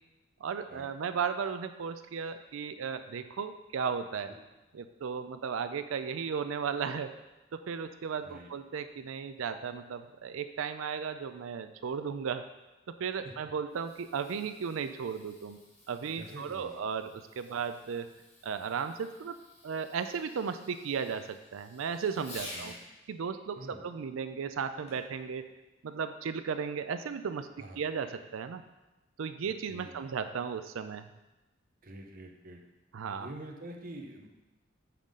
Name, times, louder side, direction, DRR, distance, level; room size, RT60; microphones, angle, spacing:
voice 1, 0.4-4.3 4.7-7.1 7.5-12.4 12.9-15.6 15.9-18.1 18.4-19.4 19.6-22.7 23.1-25.4 25.8-28.6 29.2-31.1 32.9-33.3, right 6 dB, 90° right, 9 dB, 0.4 m, -35 dB
Fireworks, 13.6-22.9 24.9-25.2 25.9-26.0, left 1 dB, 30° left, 2.0 m, -52 dB
voice 2, 16.1-16.8 17.5-17.6 22.5-22.8 23.6-23.8 27.6-27.9 29.7-30.1 31.8-32.6 33.2-34.3, right 1 dB, 45° right, 3 dB, 0.9 m, -46 dB
9.0 x 5.7 x 3.7 m, 1.1 s
head